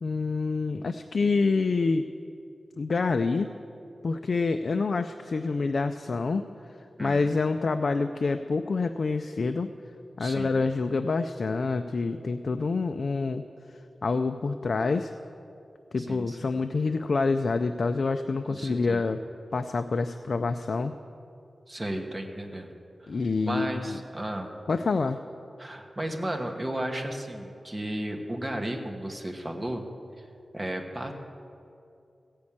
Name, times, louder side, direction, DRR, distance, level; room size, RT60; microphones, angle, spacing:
voice 1, 0.0-2.1 2.8-3.5 4.0-6.5 7.0-9.7 10.2-13.5 14.0-15.1 15.9-19.2 19.5-21.0 23.1-24.0 24.7-25.2, left 4 dB, 60° left, 8 dB, 0.4 m, -27 dB
voice 2, 7.0-7.3 10.2-10.7 16.0-16.6 18.5-19.1 21.7-22.8 23.0-23.1 23.4-24.5 25.6-29.8 30.2-30.3 30.5-31.1, right 1 dB, 20° right, 3 dB, 1.2 m, -34 dB
15.5 x 5.3 x 8.6 m, 2.6 s
wide cardioid pair, 105°, 0 cm